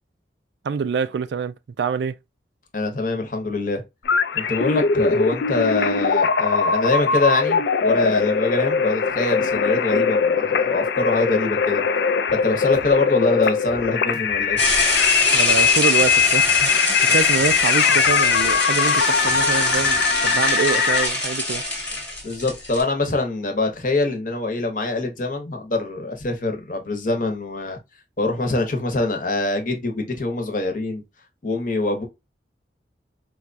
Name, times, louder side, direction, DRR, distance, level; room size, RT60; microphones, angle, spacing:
voice 1, 0.6-2.2 15.3-21.6, right 5 dB, 70° right, 0.3 m, -25 dB
voice 2, 2.7-3.8 4.3-11.8 12.3-14.6 22.2-27.8 28.2-31.0 31.4-32.1, left 2 dB, 45° left, 0.9 m, -24 dB
sound 1, 4.0-21.1, left 6 dB, 65° left, 0.4 m, -21 dB
sound 2, 12.7-13.0 13.4-14.9 15.3-16.7 17.2-18.6 19.0-20.3, right 1 dB, 20° right, 0.6 m, -44 dB
sound 3, 14.6-22.8, left 1 dB, 10° left, 1.0 m, -24 dB
4.5 x 2.3 x 2.5 m
head